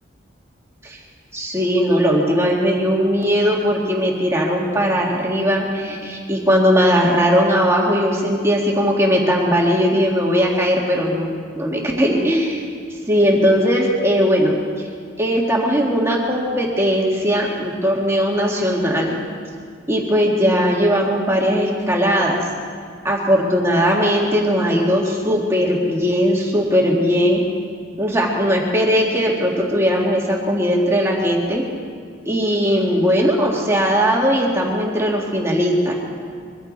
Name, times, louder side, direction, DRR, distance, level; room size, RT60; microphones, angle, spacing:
voice 1, 1.3-12.6 13.1-14.9 15.2-19.1 19.9-22.5 23.0-27.4 28.0-31.6 32.3-35.9, equal, 15° right, -2 dB, 1.9 m, -18 dB
23.0 x 14.5 x 4.1 m, 2.1 s
head